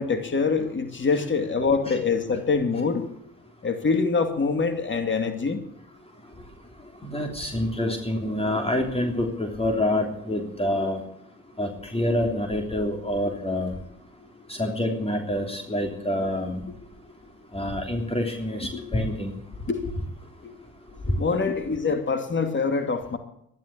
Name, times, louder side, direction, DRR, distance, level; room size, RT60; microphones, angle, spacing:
voice 1, 0.0-3.1 3.6-5.6 18.6-18.9 19.7-19.8 20.4-20.5 21.1-23.2, left 4 dB, 40° left, 7 dB, 2.5 m, -25 dB
voice 2, 7.0-11.0 11.6-13.7 14.5-16.6 17.5-19.3, left 1 dB, 20° left, 3 dB, 3.3 m, -27 dB
13.5 x 11.5 x 8.5 m, 0.74 s
hypercardioid pair, 50°, 31 cm